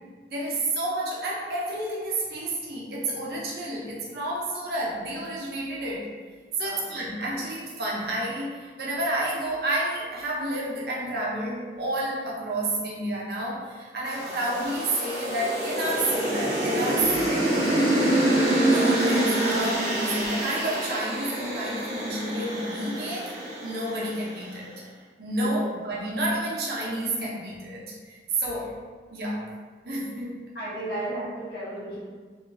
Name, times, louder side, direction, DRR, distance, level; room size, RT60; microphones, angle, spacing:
voice 1, 0.3-6.1 6.6-17.6 18.7-23.4 23.6-24.7 25.2-28.7 29.1-29.5 29.8-30.3, right 1 dB, 60° right, -4 dB, 0.7 m, -30 dB
sound 1, 14.1-24.4, right 1 dB, 40° right, 1.0 m, -26 dB
voice 2, 30.5-32.0, right 1 dB, 65° left, -9 dB, 1.4 m, -34 dB
3.1 x 2.6 x 3.9 m, 1.5 s
head